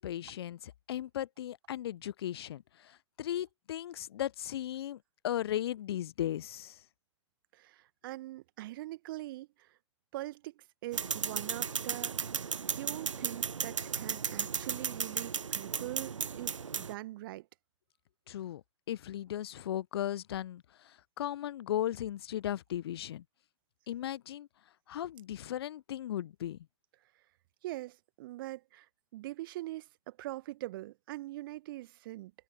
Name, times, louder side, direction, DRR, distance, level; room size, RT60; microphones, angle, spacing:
voice 1, 0.0-6.8 18.3-18.6 18.9-23.2 23.9-24.5 24.9-26.6, left 11 dB, 50° left, 1.0 m, -37 dB
voice 2, 7.5-9.8 10.1-12.2 12.7-17.5 27.6-28.9 29.1-32.3, right 17 dB, 40° right, 1.4 m, -42 dB
sound 1, 10.9-16.9, right 6 dB, 70° right, 0.8 m, -35 dB
figure-of-eight pair, 110°, 16 cm